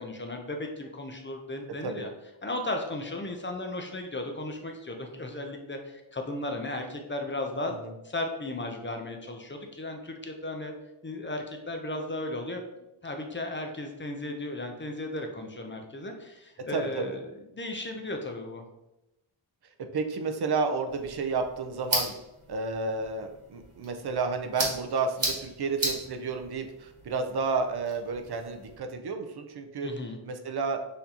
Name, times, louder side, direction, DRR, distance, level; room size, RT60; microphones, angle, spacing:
voice 1, 0.0-2.1 2.4-7.7 8.0-10.7 11.0-12.6 13.0-17.3 17.5-18.6 29.8-30.2, left 2 dB, 25° left, 4 dB, 0.5 m, -35 dB
voice 2, 16.7-17.2 19.9-22.1 22.5-29.9 30.2-30.8, right 4 dB, 50° right, 5 dB, 0.6 m, -31 dB
sound 1, 20.9-28.8, right 1 dB, 30° right, 1.3 m, -36 dB
6.6 x 2.7 x 2.8 m, 0.91 s
wide cardioid pair, 140°, 50 cm